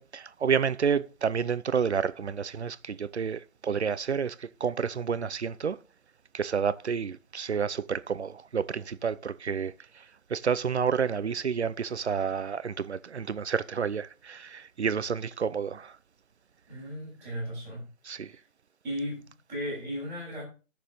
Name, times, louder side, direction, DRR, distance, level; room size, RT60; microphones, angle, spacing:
voice 1, 0.0-5.8 6.3-16.0 18.0-18.4, right 6 dB, 55° right, 0.7 m, -30 dB
voice 2, 16.7-17.9 18.2-18.4 18.8-20.4, equal, 5° right, 6.6 m, -36 dB
12.5 x 6.7 x 3.9 m
hypercardioid pair, 175°, 39 cm